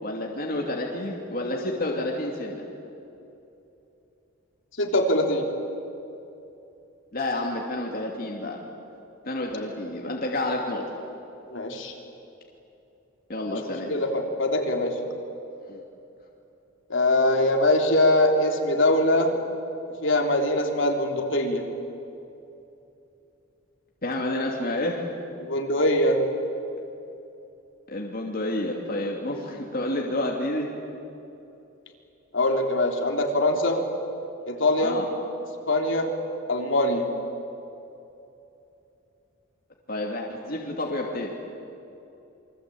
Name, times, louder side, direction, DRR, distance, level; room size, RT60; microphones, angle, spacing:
voice 1, 0.0-2.7 7.1-8.6 9.2-10.8 13.3-13.9 15.7-15.8 24.0-25.0 27.9-30.7 34.8-35.1 39.9-41.3, left 1 dB, 45° left, -1 dB, 2.7 m, -29 dB
voice 2, 4.8-5.5 11.5-11.9 13.5-13.6 13.9-15.0 16.9-19.4 20.0-21.7 25.4-26.2 32.3-33.8 34.5-35.0 35.7-36.1 36.5-37.1, left 1 dB, 65° left, 2 dB, 3.4 m, -22 dB
28.5 x 24.0 x 8.7 m, 2.9 s
head